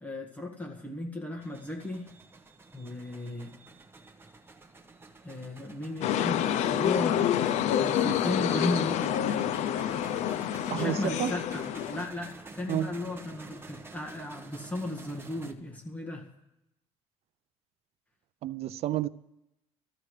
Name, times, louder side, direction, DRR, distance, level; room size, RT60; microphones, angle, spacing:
voice 1, 0.0-2.1 2.7-3.5 5.2-7.4 7.8-9.2 10.7-16.3, left 1 dB, 10° left, 1.7 m, -35 dB
sound 1, 1.4-15.5, right 3 dB, 20° right, 1.1 m, -49 dB
sound 2, 6.0-12.1, left 10 dB, 70° left, 0.6 m, -28 dB
voice 2, 10.7-11.3 12.7-12.9 18.4-19.1, right 12 dB, 55° right, 0.4 m, -30 dB
25.5 x 14.5 x 3.3 m
cardioid pair, 130°, 12 cm